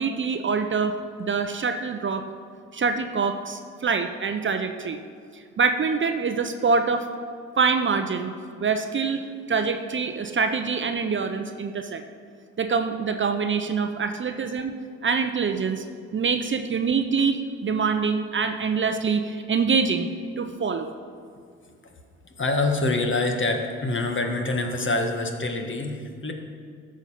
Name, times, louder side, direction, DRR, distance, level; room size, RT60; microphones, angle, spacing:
voice 1, 0.0-2.2 2.7-5.0 5.3-7.1 7.6-8.3 8.6-9.2 9.5-12.0 12.6-14.7 15.0-15.8 16.1-20.1 20.4-20.9, right 5 dB, 35° right, 7 dB, 0.8 m, -25 dB
voice 2, 22.2-26.3, left 2 dB, 35° left, 4 dB, 1.6 m, -26 dB
14.0 x 5.3 x 5.7 m, 2.2 s
hypercardioid pair, 50°, 35 cm